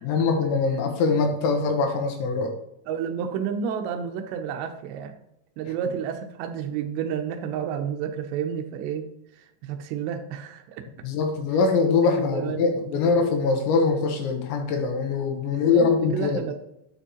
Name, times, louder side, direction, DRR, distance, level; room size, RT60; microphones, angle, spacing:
voice 1, 0.0-2.5 11.0-16.4, left 4 dB, 75° left, 4 dB, 3.0 m, -23 dB
voice 2, 2.9-5.1 5.6-9.1 9.4-10.9 12.2-13.0 15.5-16.5, right 8 dB, 85° right, 6 dB, 2.5 m, -31 dB
9.9 x 6.9 x 2.9 m, 0.83 s
omnidirectional pair, 5.9 m